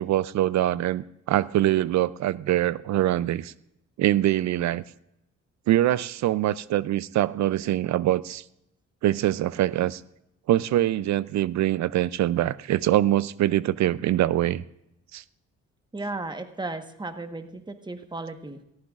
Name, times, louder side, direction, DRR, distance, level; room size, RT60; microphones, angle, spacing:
voice 1, 0.0-3.5 4.0-4.8 5.7-8.4 9.0-10.0 10.5-14.6 15.1-15.2, right 13 dB, 65° right, 18 dB, 0.5 m, -24 dB
voice 2, 15.9-18.6, right 2 dB, 15° right, 7 dB, 1.2 m, -35 dB
17.5 x 14.0 x 2.4 m, 0.82 s
cardioid pair, 90°, 30 cm